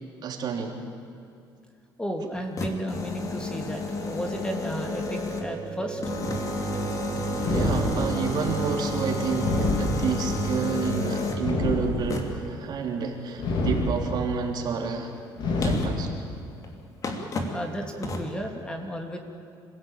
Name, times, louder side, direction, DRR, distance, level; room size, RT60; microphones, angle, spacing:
voice 1, 0.2-0.8 7.3-15.1 15.6-16.1, right 5 dB, 55° right, 2 dB, 3.4 m, -30 dB
voice 2, 2.0-6.0 17.5-19.2, equal, 10° left, 3 dB, 2.5 m, -33 dB
sound 1, 2.3-5.6 6.0-11.5 12.1-12.5 14.8-14.9 15.6-16.0 16.6-16.7 17.0-17.6 18.0-18.3, left 3 dB, 40° left, 3.0 m, -31 dB
sound 2, 3.8-15.9, right 5 dB, 35° right, 3.3 m, -37 dB
sound 3, 7.4-8.4 9.4-10.4 11.4-12.4 13.4-14.4 15.4-16.4, left 2 dB, 60° left, 3.9 m, -28 dB
26.5 x 16.5 x 9.0 m, 2.5 s
cardioid pair, 125°, 9 cm